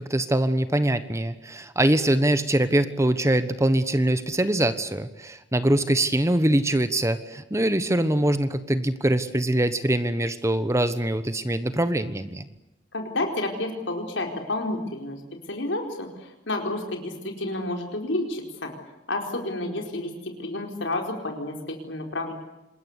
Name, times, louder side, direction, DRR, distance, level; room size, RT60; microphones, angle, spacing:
voice 1, 0.0-12.4, right 1 dB, 15° right, 12 dB, 1.2 m, -23 dB
voice 2, 12.9-15.2 15.5-18.7 19.1-22.3, left 2 dB, 80° left, 3 dB, 4.6 m, -30 dB
26.5 x 21.5 x 8.2 m, 0.94 s
head